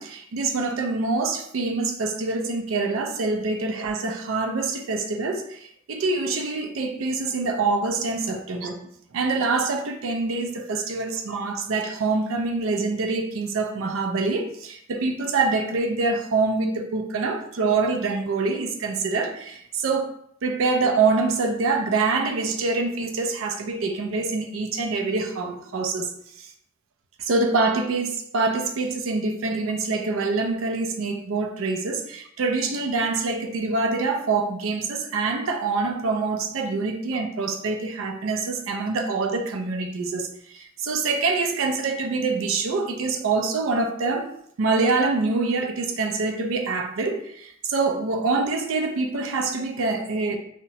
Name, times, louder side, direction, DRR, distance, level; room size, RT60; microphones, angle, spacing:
voice 1, 0.0-8.8 9.1-20.1 20.4-26.1 26.4-26.5 27.2-44.3 44.6-50.4, right 3 dB, 70° right, 5 dB, 0.4 m, -25 dB
2.7 x 2.1 x 2.9 m, 0.69 s
head